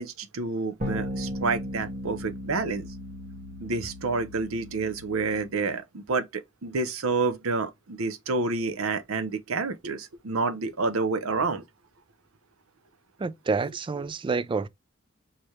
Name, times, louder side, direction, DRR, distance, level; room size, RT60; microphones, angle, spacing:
voice 1, 0.0-2.9 3.6-11.6, right 3 dB, 85° right, 0.7 m, -29 dB
sound 1, 0.8-5.6, equal, 40° right, 1.3 m, -36 dB
voice 2, 13.2-14.7, right 4 dB, 25° right, 0.3 m, -28 dB
4.6 x 2.9 x 3.1 m
head